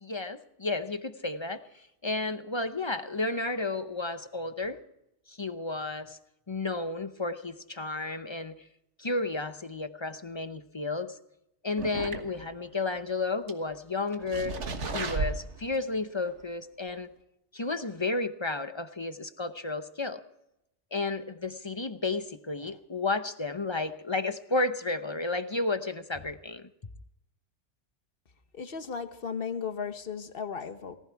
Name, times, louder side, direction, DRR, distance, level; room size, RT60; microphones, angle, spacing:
voice 1, 0.0-4.8 5.3-6.2 6.5-8.5 9.0-11.2 11.6-14.6 14.9-17.1 17.5-20.2 20.9-26.7, left 3 dB, 30° left, 10 dB, 0.7 m, -32 dB
sound 1, 11.8-12.6 12.9-13.0 13.5-13.6 14.1-15.9 16.3-16.4 16.9-17.0, right 4 dB, 85° right, 1.8 m, -34 dB
voice 2, 28.5-31.0, left 6 dB, 55° left, 9 dB, 1.3 m, -35 dB
18.5 x 15.0 x 4.7 m, 0.83 s
omnidirectional pair, 1.2 m